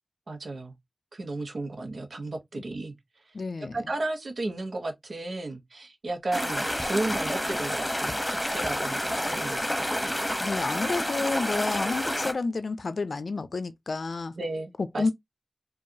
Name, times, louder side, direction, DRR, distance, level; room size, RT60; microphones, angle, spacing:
voice 1, 0.3-0.7 1.1-2.9 3.7-10.1 14.3-15.1, right 2 dB, 90° right, 1.0 m, -34 dB
voice 2, 3.3-3.8 10.4-14.3 14.8-15.1, left 3 dB, 90° left, 0.5 m, -30 dB
sound 1, 6.3-12.3, equal, 10° left, 1.0 m, -29 dB
4.7 x 2.5 x 2.7 m
wide cardioid pair, 60°, 0 cm